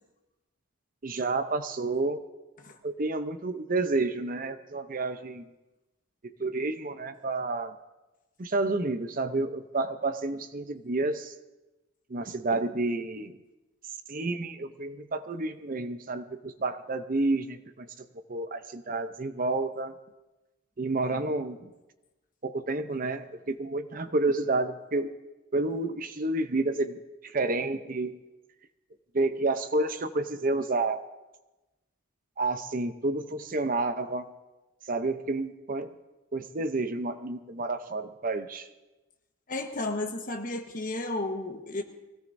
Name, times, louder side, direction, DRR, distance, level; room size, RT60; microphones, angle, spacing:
voice 1, 1.0-2.2 2.8-5.4 6.2-7.7 8.4-11.3 12.1-13.3 14.1-17.6 18.3-19.9 20.8-21.6 22.4-25.1 25.5-27.0 27.3-28.1 29.1-31.0 32.4-34.3 34.9-35.9 36.3-38.7, right 2 dB, 40° right, 9 dB, 0.6 m, -30 dB
voice 2, 39.5-41.8, left 2 dB, 40° left, 4 dB, 1.3 m, -33 dB
23.5 x 17.0 x 2.7 m, 1.1 s
head